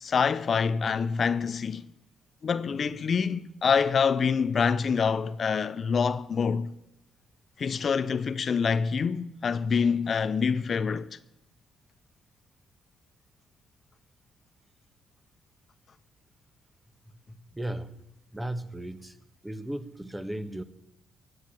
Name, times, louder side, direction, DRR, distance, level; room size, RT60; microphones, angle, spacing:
voice 1, 0.0-1.9 2.4-6.7 7.6-11.2, left 6 dB, 50° left, 0.7 m, -26 dB
voice 2, 17.4-18.0 18.3-19.2 19.4-20.6, right 1 dB, 10° right, 1.5 m, -35 dB
16.5 x 7.9 x 9.1 m
hypercardioid pair, 50°, 0 cm